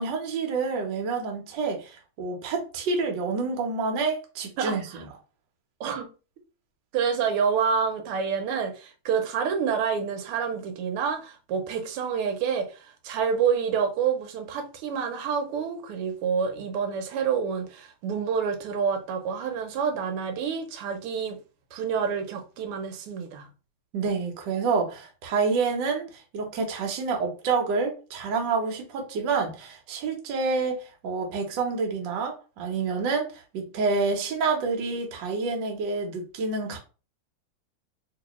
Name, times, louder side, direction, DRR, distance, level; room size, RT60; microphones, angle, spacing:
voice 1, 0.0-5.0 23.9-36.8, right 4 dB, 65° right, 1.4 m, -28 dB
voice 2, 6.9-21.4 21.7-23.5, right 6 dB, 90° right, 1.6 m, -28 dB
3.2 x 3.0 x 3.0 m
omnidirectional pair, 2.4 m